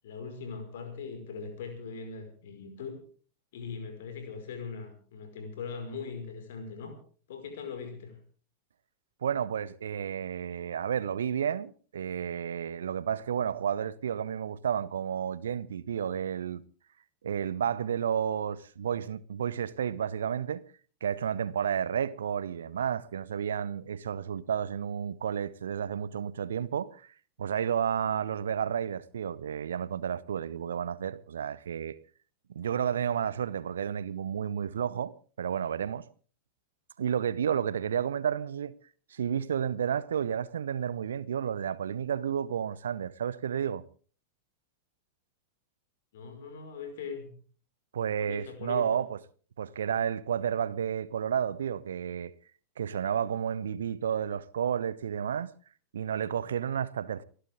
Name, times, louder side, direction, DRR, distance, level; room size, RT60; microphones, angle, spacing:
voice 1, 0.0-3.0 3.5-7.0 7.3-8.2 46.1-47.4 48.2-48.9, left 5 dB, 55° left, 5.2 m, -40 dB
voice 2, 9.2-16.6 17.2-20.6 21.0-27.1 27.4-32.0 32.5-36.0 37.0-38.8 39.1-43.8 47.9-49.2 49.6-52.3 52.8-55.5 55.9-57.2, right 8 dB, 65° right, 0.8 m, -31 dB
29.5 x 11.5 x 3.7 m
figure-of-eight pair, 90°, 0 cm